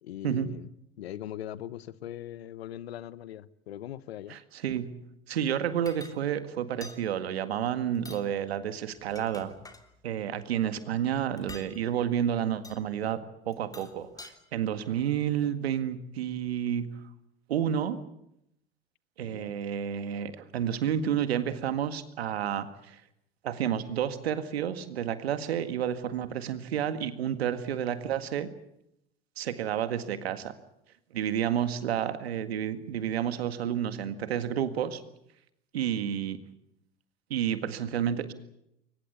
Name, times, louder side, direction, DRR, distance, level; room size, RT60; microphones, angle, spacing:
voice 1, 0.0-0.7 1.0-4.4 19.2-19.6, left 12 dB, 85° left, 1.0 m, -40 dB
voice 2, 4.3-4.9 5.3-9.5 10.0-13.2 13.4-16.9 17.5-18.0 19.2-23.0 23.4-28.5 29.4-30.5 31.1-35.0 35.7-36.4 37.3-38.3, right 9 dB, 85° right, 1.9 m, -30 dB
sound 1, 5.9-6.2 6.8-7.0 7.9-8.3 8.9-9.8 11.4-11.7 12.6-12.8 13.5-14.3, left 2 dB, 10° left, 3.0 m, -47 dB
23.0 x 20.5 x 8.4 m
hypercardioid pair, 85°, 30 cm